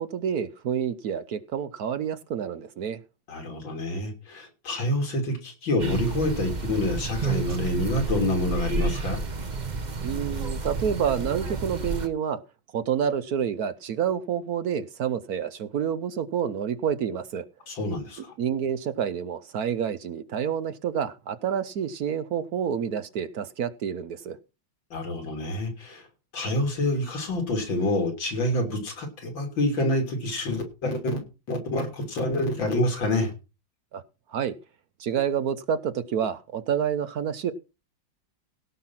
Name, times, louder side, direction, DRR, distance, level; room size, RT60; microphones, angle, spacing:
voice 1, 0.0-3.0 10.0-12.4 12.7-17.4 18.4-24.4 33.9-34.0 34.3-34.5 35.0-37.5, right 8 dB, 60° right, 1.1 m, -28 dB
voice 2, 3.3-9.2 17.7-18.3 24.9-26.1 26.3-31.2 31.5-33.3, left 1 dB, 85° left, 3.8 m, -27 dB
sound 1, 5.8-12.1, right 4 dB, 30° right, 0.9 m, -30 dB
17.0 x 6.0 x 5.7 m
omnidirectional pair, 2.0 m